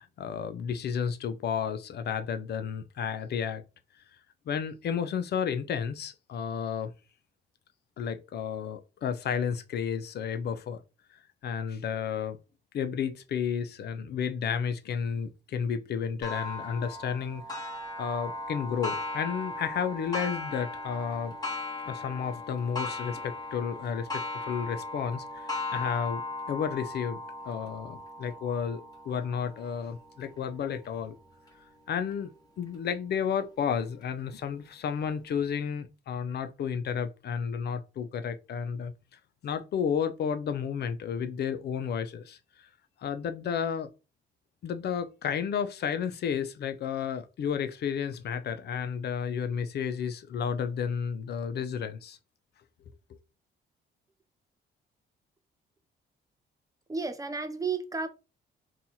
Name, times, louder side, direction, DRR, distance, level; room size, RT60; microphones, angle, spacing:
voice 1, 0.0-3.6 4.5-6.9 8.0-10.8 11.4-12.4 12.7-17.7 18.0-21.4 21.9-26.2 26.5-31.2 31.9-38.9 39.4-42.7 43.0-43.9 44.6-52.2, left 7 dB, 55° left, 0.4 m, -32 dB
Clock, 16.2-31.5 32.1-32.2 32.7-32.8 33.8-33.9, left 2 dB, 20° left, 1.0 m, -38 dB
voice 2, 56.9-58.1, right 4 dB, 15° right, 0.5 m, -32 dB
2.7 x 2.3 x 4.0 m
cardioid pair, 90°, 20 cm